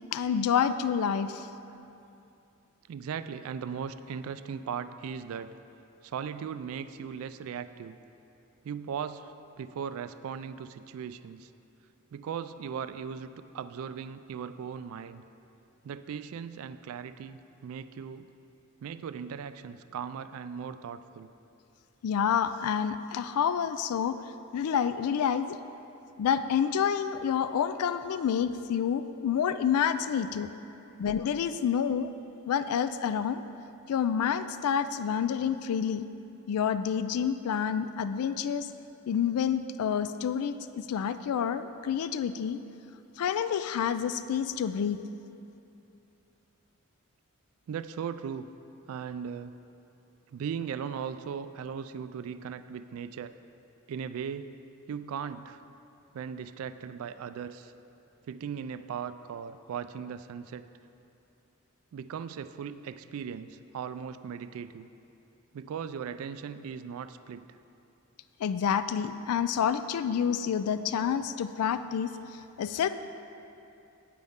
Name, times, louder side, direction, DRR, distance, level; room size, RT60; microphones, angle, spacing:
voice 1, 0.1-1.5 22.0-24.2 24.5-25.6 26.2-30.5 31.0-32.1 32.5-33.4 33.9-36.0 36.5-38.7 39.1-42.6 43.2-45.0 68.4-72.9, left 8 dB, 90° left, 12 dB, 0.3 m, -28 dB
voice 2, 2.9-5.5 6.0-8.0 8.6-11.5 12.1-13.3 13.5-15.2 15.8-18.3 18.8-21.3 47.7-48.5 48.9-49.6 50.3-53.3 53.9-54.6 54.9-55.6 56.1-57.7 58.3-60.7 61.9-64.9 65.5-67.5, right 7 dB, 70° right, 13 dB, 0.3 m, -38 dB
9.4 x 9.1 x 3.6 m, 2.7 s
head